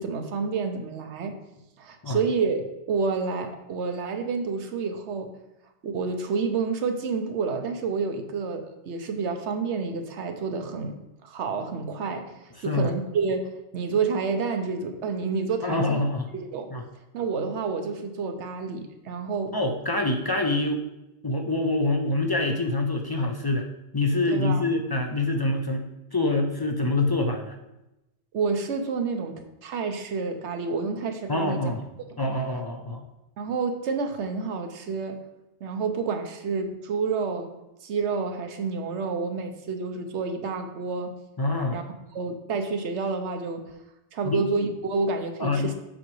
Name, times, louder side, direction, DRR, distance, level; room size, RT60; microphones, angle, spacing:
voice 1, 0.0-1.3 1.8-5.3 5.8-12.3 12.6-16.0 16.3-16.7 17.1-19.5 24.3-24.7 28.3-31.8 33.4-35.2 35.6-37.5 37.8-41.1 41.7-41.8 42.1-43.7 44.1-45.7, right 4 dB, 80° right, 6 dB, 1.1 m, -29 dB
voice 2, 15.6-16.3 16.7-16.8 19.5-20.8 21.2-23.7 23.9-25.9 26.1-27.6 31.3-31.8 32.2-33.0 41.4-41.8 44.2-44.4 45.4-45.7, left 2 dB, 40° left, 3 dB, 0.3 m, -25 dB
7.5 x 6.0 x 3.1 m, 0.94 s
omnidirectional pair, 1.2 m